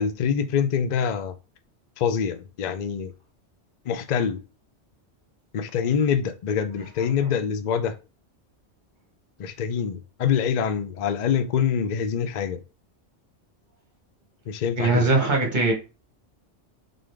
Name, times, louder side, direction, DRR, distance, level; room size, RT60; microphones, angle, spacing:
voice 1, 0.0-1.3 2.0-3.1 3.9-4.4 5.5-7.9 9.4-12.6 14.5-15.0, left 7 dB, 55° left, 0.5 m, -25 dB
voice 2, 14.8-15.7, right 3 dB, 45° right, 1.3 m, -20 dB
3.9 x 3.7 x 3.3 m
omnidirectional pair, 1.2 m